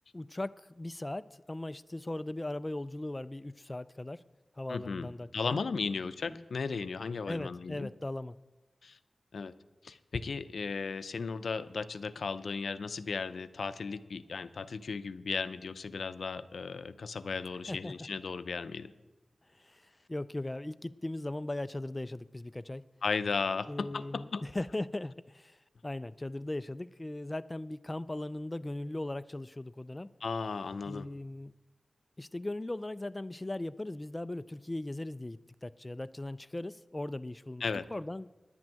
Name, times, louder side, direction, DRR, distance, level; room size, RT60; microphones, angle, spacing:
voice 1, 0.1-4.2 4.6-5.6 6.3-6.4 7.3-8.4 17.7-18.1 19.5-22.8 23.7-30.1 30.8-31.5 32.2-37.6 37.9-38.4, left 1 dB, 25° left, 14 dB, 0.3 m, -38 dB
voice 2, 4.7-7.9 8.8-9.0 9.3-9.5 9.8-18.9 23.0-24.4 30.2-31.1 37.6-37.9, left 4 dB, 80° left, 13 dB, 0.5 m, -35 dB
11.0 x 6.1 x 9.0 m, 1.1 s
wide cardioid pair, 75°, 0 cm